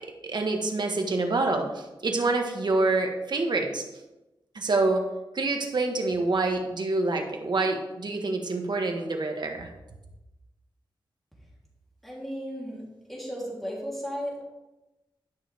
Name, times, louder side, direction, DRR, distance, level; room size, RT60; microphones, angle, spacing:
voice 1, 0.2-3.8 4.5-5.0 5.3-9.7, right 3 dB, 60° right, 3 dB, 1.5 m, -26 dB
voice 2, 12.0-12.8 13.1-14.4, equal, ahead, -5 dB, 3.3 m, -34 dB
12.0 x 6.2 x 3.5 m, 1.0 s
wide cardioid pair, 70°, 8 cm